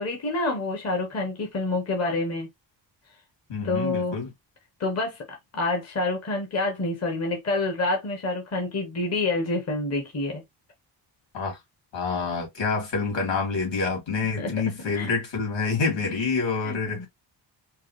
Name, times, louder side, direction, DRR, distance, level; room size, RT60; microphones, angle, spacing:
voice 1, 0.0-2.5 3.6-4.2 4.8-5.2 5.5-10.4 14.4-15.1 16.6-17.1, left 2 dB, 35° left, 1.0 m, -28 dB
voice 2, 3.5-4.3 11.3-11.6 11.9-17.1, left 4 dB, 75° left, 2.4 m, -27 dB
4.6 x 2.0 x 3.0 m
wide cardioid pair, 150°, 45 cm